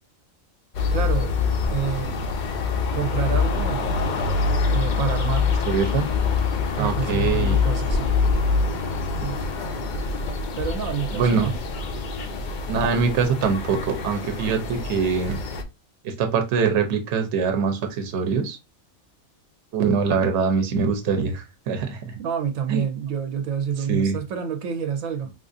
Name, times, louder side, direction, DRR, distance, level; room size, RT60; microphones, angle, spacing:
sound 1, 0.7-15.6, left 4 dB, 75° left, 0.4 m, -25 dB
voice 1, 0.9-1.3 1.7-2.2 2.9-3.9 4.7-5.5 6.8-8.1 10.6-11.6 22.2-25.3, right 7 dB, 85° right, 1.0 m, -28 dB
voice 2, 5.6-6.1 6.7-7.6 9.2-9.3 11.1-11.5 12.7-15.4 16.0-18.6 19.7-22.1 22.7-22.8 23.9-24.2, right 5 dB, 65° right, 0.9 m, -23 dB
3.7 x 2.4 x 2.5 m
omnidirectional pair, 1.4 m